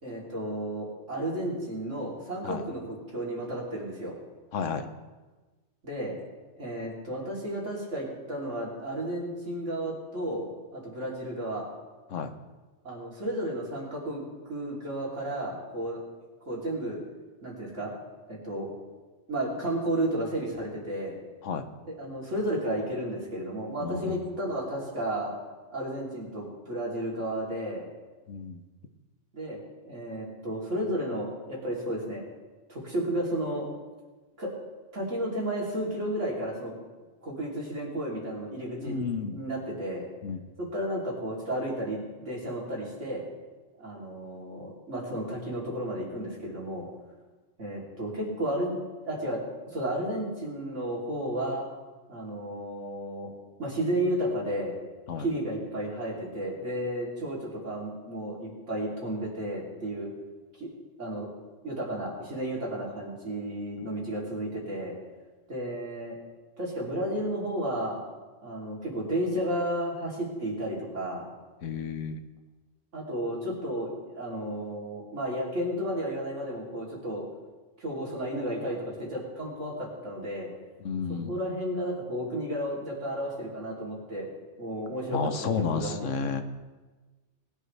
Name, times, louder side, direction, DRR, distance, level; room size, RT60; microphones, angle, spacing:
voice 1, 0.0-4.1 5.8-6.1 6.6-10.5 10.7-11.7 12.8-16.0 16.5-17.0 17.4-17.9 18.3-18.7 19.3-21.1 22.0-25.3 25.7-27.9 29.3-29.6 29.8-32.2 32.7-33.7 34.4-34.5 34.9-36.7 37.2-39.0 39.3-40.1 40.6-43.2 43.8-46.9 47.6-48.7 49.0-49.4 49.7-51.7 52.1-53.3 53.6-54.7 55.2-60.1 60.6-60.7 61.0-61.3 61.6-65.0 65.5-66.1 66.6-68.0 68.4-71.3 72.9-77.2 77.8-80.5 81.3-84.3 84.6-85.2 85.6-86.1, right 1 dB, 75° right, -4 dB, 3.6 m, -32 dB
voice 2, 4.5-4.9 12.1-12.3 21.4-21.7 23.8-24.2 28.3-28.6 38.8-39.4 40.2-40.4 55.1-55.3 71.6-72.2 80.8-81.4 85.1-86.4, left 5 dB, 85° left, 8 dB, 1.3 m, -31 dB
20.5 x 10.5 x 3.3 m, 1.2 s
omnidirectional pair, 1.2 m